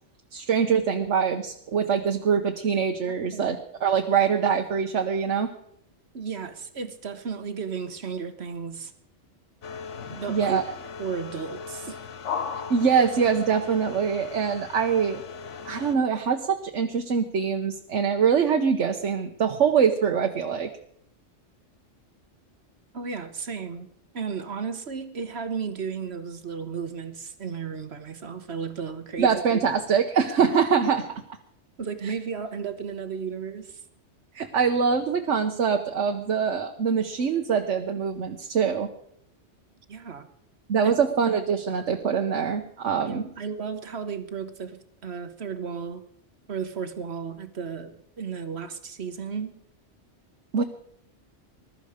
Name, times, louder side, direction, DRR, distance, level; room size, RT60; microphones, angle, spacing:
voice 1, 0.3-5.5 10.3-10.6 12.7-15.2 15.6-20.7 29.2-31.1 34.3-38.9 40.7-43.2 50.5-50.6, right 6 dB, 80° right, 4 dB, 1.3 m, -24 dB
voice 2, 3.0-3.4 6.1-8.9 10.1-10.6 11.0-12.1 22.9-23.9 24.1-29.3 31.8-33.8 39.9-40.3 40.8-40.9 43.1-46.0 46.5-49.6, right 6 dB, 60° right, 9 dB, 1.4 m, -34 dB
sound 1, 9.6-15.9, left 6 dB, 90° left, 1.3 m, -37 dB
20.5 x 12.5 x 5.0 m, 0.72 s
omnidirectional pair, 1.2 m